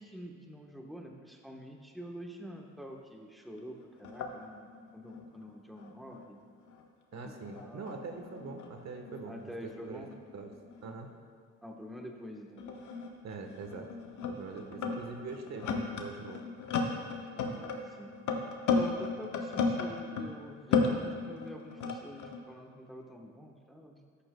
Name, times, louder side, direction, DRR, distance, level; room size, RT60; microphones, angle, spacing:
voice 1, 0.0-6.4 7.2-7.9 9.3-10.1 11.6-12.6 17.3-18.1 18.7-24.0, equal, ahead, 1 dB, 1.1 m, -46 dB
sound 1, 3.6-3.7 4.0-6.8 7.1-10.9 11.8-11.9 12.6-20.4 20.7-22.4, left 4 dB, 75° left, 1.1 m, -35 dB
voice 2, 7.1-10.0 10.3-10.5 10.8-11.1 13.2-13.9 14.3-16.4, right 4 dB, 60° right, 4 dB, 1.2 m, -43 dB
13.5 x 10.0 x 2.2 m, 2.2 s
cardioid pair, 90°, 30 cm